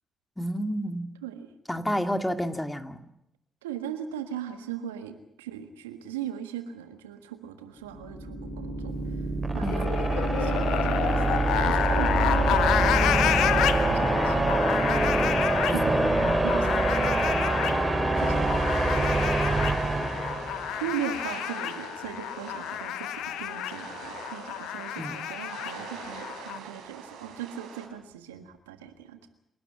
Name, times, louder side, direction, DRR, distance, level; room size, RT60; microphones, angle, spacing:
voice 1, 0.4-1.1 1.7-3.0 9.6-9.8 15.7-16.5 18.3-18.4 25.0-25.2, equal, 10° left, 8 dB, 2.3 m, -30 dB
voice 2, 3.6-9.3 9.5-15.2 15.7-17.6 18.2-19.2 20.7-29.3, right 9 dB, 85° right, 9 dB, 1.6 m, -39 dB
sound 1, 7.8-21.0, right 2 dB, 25° right, 2.8 m, -25 dB
sound 2, 9.6-26.6, left 12 dB, 70° left, 0.9 m, -30 dB
sound 3, 18.1-27.9, right 6 dB, 70° right, 4.0 m, -43 dB
27.5 x 12.0 x 9.6 m, 0.79 s
hypercardioid pair, 45°, 0 cm